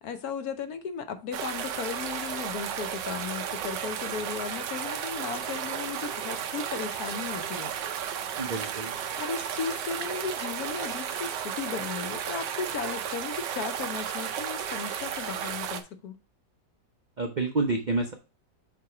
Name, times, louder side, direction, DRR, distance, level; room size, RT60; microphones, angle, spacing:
voice 1, 0.0-7.7 9.2-16.2, left 6 dB, 65° left, 1.1 m, -36 dB
sound 1, 1.3-15.8, right 8 dB, 85° right, 1.4 m, -33 dB
voice 2, 8.4-9.0 17.2-18.1, right 3 dB, 55° right, 0.5 m, -28 dB
7.5 x 3.0 x 4.7 m
omnidirectional pair, 1.9 m